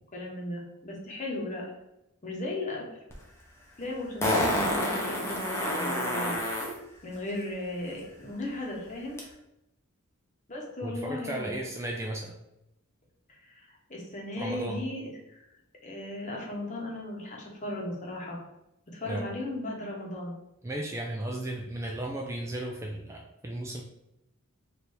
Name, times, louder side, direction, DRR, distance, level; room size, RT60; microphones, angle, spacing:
voice 1, 0.1-1.7 2.2-3.0 3.8-6.4 7.0-9.2 10.5-11.6 13.3-15.4 15.8-18.4 18.9-20.4, left 1 dB, 35° left, -2 dB, 0.9 m, -36 dB
Fart, 3.1-3.2 4.2-6.7 9.2-9.3, left 1 dB, 10° left, 0.7 m, -28 dB
voice 2, 10.8-12.4 14.4-14.8 19.1-19.3 20.6-23.8, right 1 dB, 15° right, 0 dB, 0.3 m, -35 dB
3.3 x 2.6 x 4.4 m, 0.85 s
head